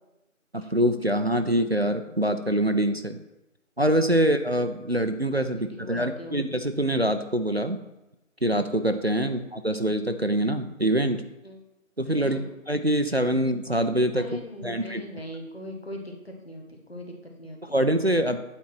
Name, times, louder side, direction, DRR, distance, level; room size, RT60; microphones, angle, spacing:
voice 1, 0.5-3.2 3.8-7.8 8.4-11.2 12.0-12.4 12.7-14.3 14.6-15.0 17.6-18.4, right 1 dB, 50° right, 8 dB, 0.5 m, -24 dB
voice 2, 5.5-6.4 9.2-9.3 11.4-11.6 12.1-12.5 14.1-17.8, left 1 dB, 50° left, 1 dB, 1.5 m, -40 dB
8.8 x 4.2 x 6.1 m, 0.95 s
figure-of-eight pair, 175°, 40 cm